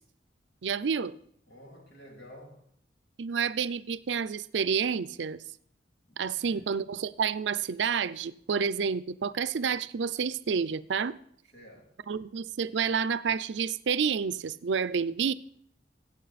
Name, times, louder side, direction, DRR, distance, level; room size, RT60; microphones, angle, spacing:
voice 1, 0.6-1.2 3.2-5.4 6.2-11.2 12.1-15.3, right 6 dB, 85° right, 0.5 m, -29 dB
voice 2, 1.5-2.7 6.1-6.7 11.5-12.0, equal, 65° left, 2.8 m, -51 dB
15.0 x 8.3 x 4.1 m
head